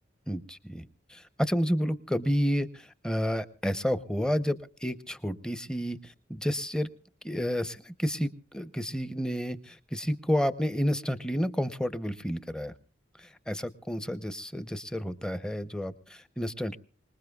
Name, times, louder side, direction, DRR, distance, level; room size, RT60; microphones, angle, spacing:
voice 1, 0.3-0.8 1.1-6.9 7.2-12.7 13.2-16.8, equal, 5° left, 13 dB, 0.7 m, -30 dB
25.5 x 20.0 x 2.3 m, 0.39 s
head